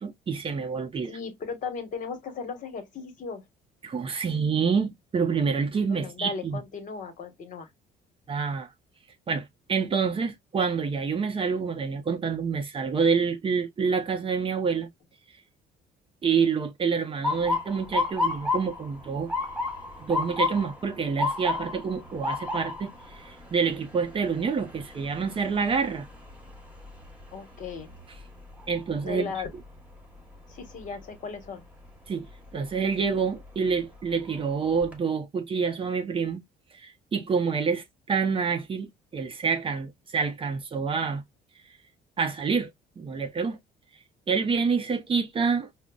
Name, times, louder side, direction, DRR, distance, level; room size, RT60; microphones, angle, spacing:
voice 1, 0.0-1.1 3.8-6.6 8.3-8.7 9.3-14.9 16.2-19.3 20.0-22.9 23.2-26.1 28.7-29.3 32.1-36.4 36.7-41.2 42.2-42.7 43.0-43.6 44.3-45.7, right 5 dB, 30° right, 0.6 m, -27 dB
voice 2, 1.1-3.4 5.9-7.7 27.3-27.9 29.0-29.5 30.5-31.6, left 5 dB, 50° left, 1.2 m, -36 dB
Motor vehicle (road) / Siren, 17.2-29.1 29.6-30.0 30.8-31.1 33.0-33.2 33.7-33.8 34.2-34.9, left 3 dB, 10° right, 1.2 m, -32 dB
5.0 x 2.0 x 2.3 m
cardioid pair, 110°, 17 cm